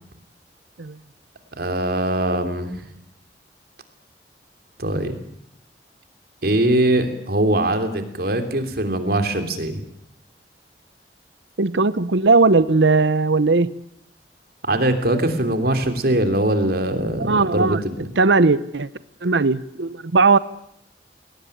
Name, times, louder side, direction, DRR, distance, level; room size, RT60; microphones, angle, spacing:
voice 1, 1.6-2.9 4.8-5.2 6.4-9.8 14.6-18.1, right 1 dB, 60° right, 7 dB, 3.2 m, -22 dB
voice 2, 11.6-13.7 17.2-17.8 18.2-18.9 19.2-20.4, right 3 dB, 90° right, 16 dB, 0.9 m, -18 dB
21.5 x 18.5 x 10.0 m, 0.74 s
head